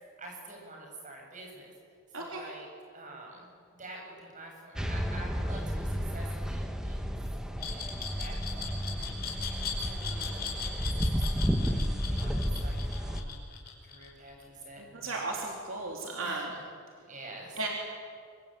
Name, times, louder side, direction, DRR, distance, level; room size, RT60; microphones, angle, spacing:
voice 1, 0.2-1.7 2.2-2.7 2.9-3.5 3.8-7.1 7.4-11.8 12.1-13.4 13.8-15.2 16.2-16.6 17.1-17.7, right 2 dB, 35° right, 0 dB, 7.7 m, -48 dB
sound 1, 4.8-13.2, equal, 5° right, 1.4 m, -32 dB
Glass, 7.6-14.4, left 6 dB, 45° left, 5.2 m, -39 dB
voice 2, 14.8-16.5 17.6-17.7, right 3 dB, 65° right, 0 dB, 3.4 m, -35 dB
25.5 x 25.0 x 9.2 m, 2.2 s
head